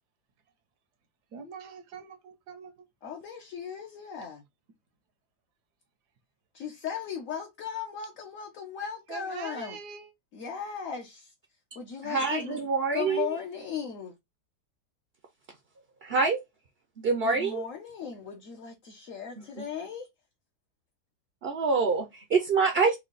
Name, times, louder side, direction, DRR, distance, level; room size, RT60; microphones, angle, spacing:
voice 1, 1.3-2.7 9.1-10.1, right 6 dB, 70° right, 1.4 m, -42 dB
voice 2, 3.0-4.4 6.5-9.8 10.3-11.3 11.7-12.6 12.9-14.1 17.2-20.1, left 7 dB, 55° left, 1.2 m, -37 dB
voice 3, 12.0-13.3 16.0-16.4 17.0-17.6 19.4-19.5 21.4-23.0, right 4 dB, 50° right, 0.7 m, -26 dB
4.6 x 2.4 x 4.0 m
omnidirectional pair, 1.8 m